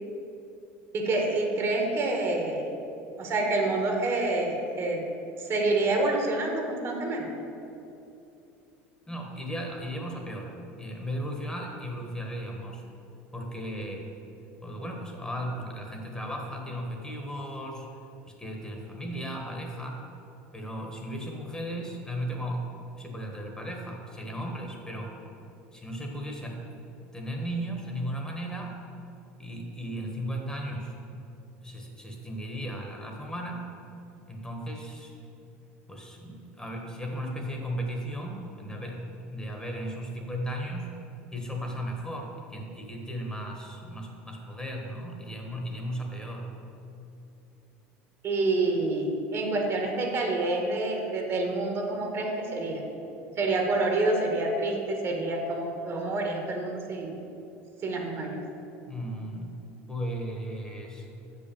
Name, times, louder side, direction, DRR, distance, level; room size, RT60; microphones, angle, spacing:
voice 1, 0.9-2.7 3.2-5.0 5.4-7.3 48.2-49.1 49.3-52.8 53.4-57.1 57.8-58.4, right 2 dB, 45° right, 1 dB, 1.5 m, -27 dB
voice 2, 9.1-10.5 10.8-12.8 13.3-14.1 14.6-18.0 18.3-20.1 20.5-25.2 25.7-26.9 27.1-28.7 29.4-30.9 31.6-33.6 34.3-35.2 35.9-40.9 41.3-46.5 58.9-59.6 59.9-61.1, equal, 10° left, 1 dB, 1.3 m, -36 dB
6.4 x 5.5 x 7.0 m, 2.8 s
supercardioid pair, 95°, 7 cm